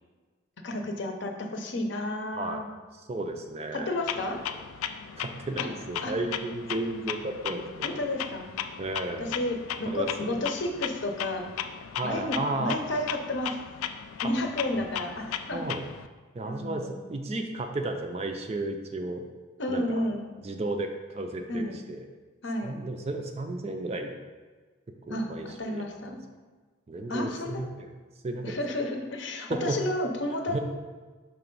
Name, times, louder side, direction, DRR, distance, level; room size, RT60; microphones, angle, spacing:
voice 1, 0.6-2.7 3.7-4.4 5.6-5.7 6.0-6.1 7.8-8.5 9.2-11.4 12.0-13.6 14.2-15.6 16.5-17.0 19.6-20.3 21.5-21.8 22.4-22.7 25.1-26.2 27.1-27.6 28.4-30.6, left 1 dB, 55° left, 3 dB, 0.7 m, -31 dB
voice 2, 3.1-4.0 5.2-8.0 8.8-9.4 9.9-10.4 12.0-12.8 14.2-14.3 14.7-14.8 15.5-15.8 16.3-19.3 19.7-20.1 20.4-22.1 22.6-24.1 25.1-26.2 26.9-27.9 28.2-28.6 29.5-29.8 30.5-30.6, right 2 dB, 30° right, 5 dB, 0.4 m, -33 dB
Clock, 4.1-16.1, left 8 dB, 85° left, 0.3 m, -36 dB
5.8 x 3.3 x 5.3 m, 1.4 s
head